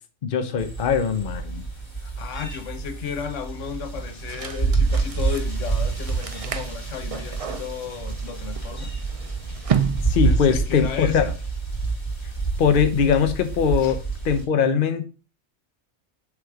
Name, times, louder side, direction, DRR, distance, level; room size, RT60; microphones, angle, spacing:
voice 1, 0.2-1.6 10.0-11.2 12.6-14.0 14.2-15.1, left 7 dB, 50° left, 0.9 m, -21 dB
sound 1, 0.6-14.4, right 4 dB, 15° left, 3.1 m, -28 dB
voice 2, 2.0-8.9 10.2-11.3 13.8-14.0, left 8 dB, 90° left, 1.2 m, -34 dB
sound 2, 4.3-10.6, right 7 dB, 55° right, 0.3 m, -32 dB
6.5 x 3.6 x 4.6 m
omnidirectional pair, 1.2 m